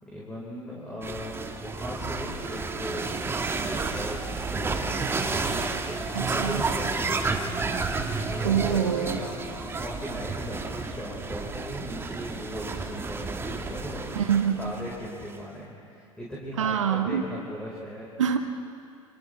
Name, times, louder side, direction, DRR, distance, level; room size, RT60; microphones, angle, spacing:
voice 1, 0.0-3.4 3.7-7.5 8.3-14.3 14.6-18.3, equal, 5° left, -6 dB, 4.7 m, -38 dB
sound 1, 1.0-15.4, right 3 dB, 15° right, 1.3 m, -31 dB
voice 2, 6.1-6.6 8.4-9.2 14.1-14.7 16.6-17.2 18.2-18.4, right 8 dB, 65° right, 6 dB, 1.4 m, -25 dB
28.5 x 27.5 x 3.4 m, 2.4 s
figure-of-eight pair, 85°, 17 cm